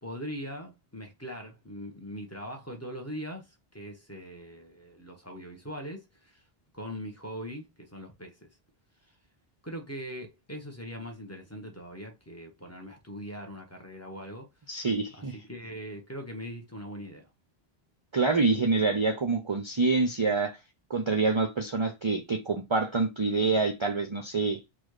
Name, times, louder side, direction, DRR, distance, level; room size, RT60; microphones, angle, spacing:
voice 1, 0.0-6.4 6.7-8.5 9.6-14.5 15.1-17.3, equal, 15° left, 1.0 m, -41 dB
voice 2, 14.7-15.4 18.1-20.6 20.9-24.6, right 3 dB, 35° right, 0.5 m, -26 dB
4.0 x 2.5 x 4.8 m
omnidirectional pair, 1.0 m